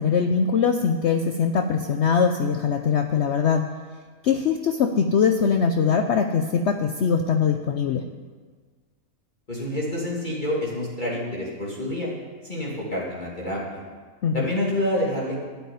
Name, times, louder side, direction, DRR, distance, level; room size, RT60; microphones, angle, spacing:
voice 1, 0.0-3.7 4.2-8.1 14.2-14.4, left 6 dB, 60° left, 6 dB, 0.9 m, -22 dB
voice 2, 9.5-12.1 12.4-13.8 14.3-15.5, left 1 dB, 30° left, -5 dB, 2.8 m, -28 dB
12.5 x 8.2 x 9.5 m, 1.5 s
omnidirectional pair, 1.5 m